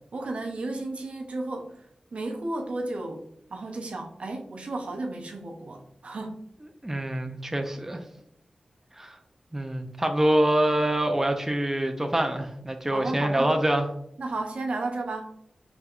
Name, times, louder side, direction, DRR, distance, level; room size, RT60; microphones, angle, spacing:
voice 1, 0.1-1.9 2.1-3.3 3.5-6.4 12.9-13.5 14.2-15.4, right 2 dB, 65° right, 3 dB, 0.6 m, -33 dB
voice 2, 6.8-8.0 9.0-9.2 9.5-13.9, right 1 dB, 15° right, 5 dB, 0.5 m, -25 dB
4.5 x 3.4 x 2.4 m, 0.72 s
cardioid pair, 45°, 2 cm